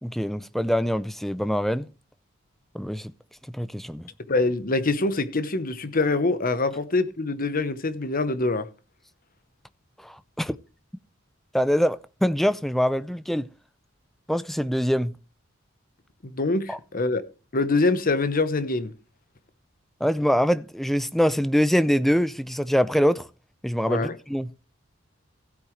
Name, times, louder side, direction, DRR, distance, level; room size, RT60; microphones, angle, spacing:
voice 1, 0.0-1.9 2.7-3.1 3.5-4.0 10.0-10.6 11.5-13.5 14.3-15.1 16.7-16.8 20.0-23.3 23.6-24.5, equal, ahead, 0.5 m, -24 dB
voice 2, 4.3-8.7 16.2-17.2 17.5-18.9 23.9-24.1, left 3 dB, 45° left, 1.0 m, -24 dB
16.0 x 8.6 x 3.2 m
head